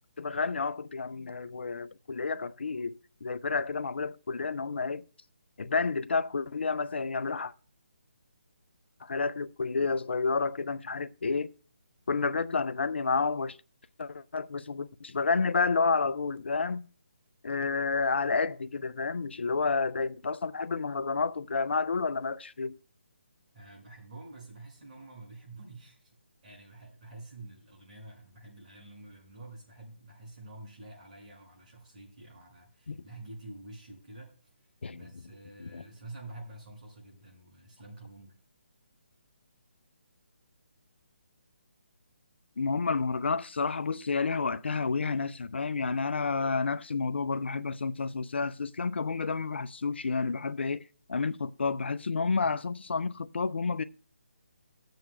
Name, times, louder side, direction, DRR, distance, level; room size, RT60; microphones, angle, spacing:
voice 1, 0.2-2.9 3.2-5.0 5.6-7.5 9.0-11.5 12.1-13.6 14.0-16.9 17.4-22.8 32.9-33.0 34.8-35.1 35.6-35.8 42.6-50.8 51.1-53.8, left 4 dB, 70° left, 0.4 m, -30 dB
voice 2, 23.5-26.1 26.4-34.3 34.9-38.4 52.4-52.5, right 2 dB, 45° right, 5.6 m, -48 dB
18.0 x 7.7 x 2.3 m
figure-of-eight pair, 150°, 6 cm